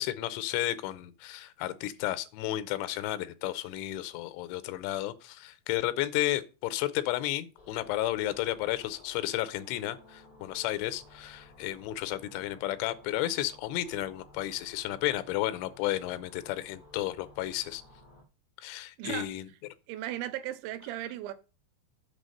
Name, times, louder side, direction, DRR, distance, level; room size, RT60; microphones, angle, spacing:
voice 1, 0.0-17.8 18.6-19.4, left 15 dB, 90° left, 3.1 m, -32 dB
sound 1, 7.6-18.2, left 2 dB, 30° left, 2.2 m, -55 dB
voice 2, 19.0-19.3 19.9-21.3, right 13 dB, 85° right, 3.0 m, -36 dB
7.9 x 6.1 x 5.3 m
omnidirectional pair, 5.3 m